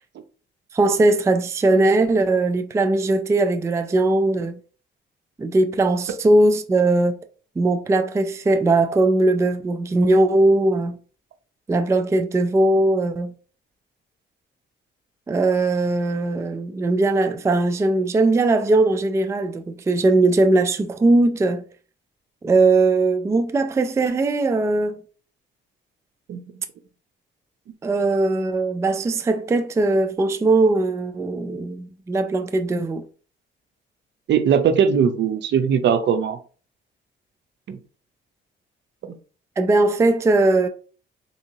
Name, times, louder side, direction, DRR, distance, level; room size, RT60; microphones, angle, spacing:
voice 1, 0.7-4.6 5.4-7.2 7.6-11.0 11.7-13.3 15.3-21.6 22.4-25.0 27.8-33.0 39.6-40.7, right 2 dB, 15° right, 0.3 m, -19 dB
voice 2, 34.3-36.4 37.7-37.8 39.1-39.2, right 7 dB, 65° right, 0.6 m, -19 dB
3.6 x 2.8 x 2.7 m
cardioid pair, 90°, 20 cm